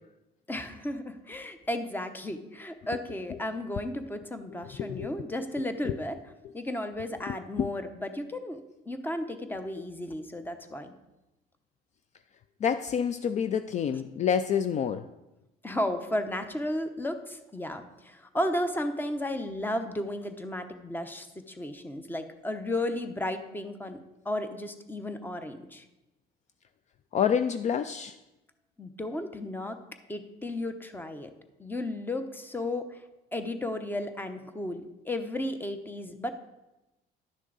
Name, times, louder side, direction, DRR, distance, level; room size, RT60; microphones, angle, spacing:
voice 1, 0.5-6.2 6.5-8.6 8.9-10.9 15.6-25.8 28.8-29.8 30.1-31.3 31.6-33.0 33.3-36.3, left 1 dB, 10° left, 9 dB, 0.8 m, -34 dB
voice 2, 4.8-5.1 5.8-6.0 7.3-7.7 12.6-15.1 27.1-28.2, left 8 dB, 45° left, 11 dB, 0.4 m, -28 dB
11.0 x 6.3 x 4.0 m, 0.98 s
cardioid pair, 110°, 17 cm